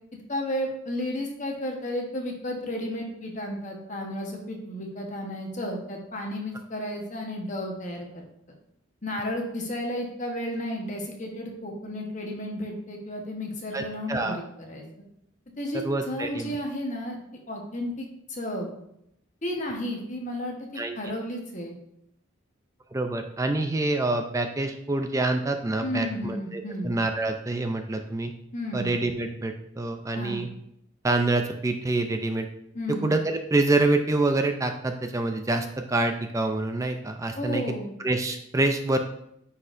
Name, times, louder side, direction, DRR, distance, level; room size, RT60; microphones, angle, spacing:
voice 1, 0.3-8.3 9.0-14.8 15.6-17.2 17.5-18.7 19.4-21.7 25.8-26.9 28.5-28.9 30.1-30.4 32.7-33.1 37.4-38.0, left 1 dB, 35° left, 1 dB, 1.1 m, -33 dB
voice 2, 13.7-14.4 15.7-16.6 20.8-21.0 22.9-28.3 28.7-30.5 31.0-32.5 33.0-37.7 38.0-39.0, right 2 dB, 15° right, 6 dB, 0.4 m, -26 dB
9.5 x 4.2 x 2.5 m, 0.77 s
head